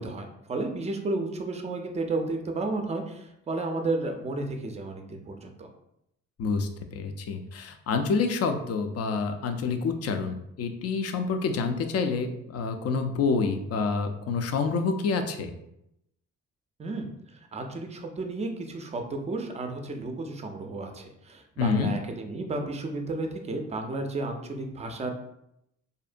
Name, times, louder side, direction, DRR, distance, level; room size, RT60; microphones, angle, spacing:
voice 1, 0.0-5.7 16.8-25.1, right 2 dB, 20° right, 4 dB, 0.4 m, -33 dB
voice 2, 6.4-15.5 21.6-21.9, left 4 dB, 55° left, 7 dB, 0.4 m, -28 dB
2.6 x 2.1 x 2.5 m, 0.80 s
cardioid pair, 90°, 30 cm